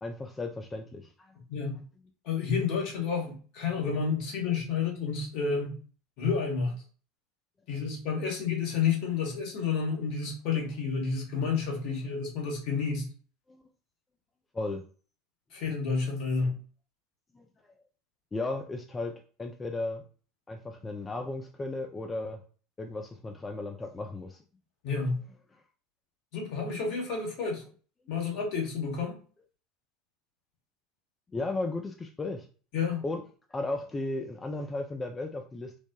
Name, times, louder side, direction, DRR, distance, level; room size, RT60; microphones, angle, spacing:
voice 1, 0.0-1.3 13.5-13.6 14.5-14.8 17.3-17.5 18.3-20.0 20.5-22.4 22.8-24.4 31.3-32.5 33.0-33.2 33.5-35.8, left 2 dB, 20° left, 4 dB, 0.3 m, -35 dB
voice 2, 2.2-5.7 6.2-6.8 7.7-13.1 15.5-16.5 24.8-25.2 26.3-27.6 28.1-29.1 32.7-33.0, left 5 dB, 55° left, 0 dB, 1.0 m, -30 dB
3.1 x 2.1 x 2.2 m, 0.40 s
figure-of-eight pair, 75°, 0 cm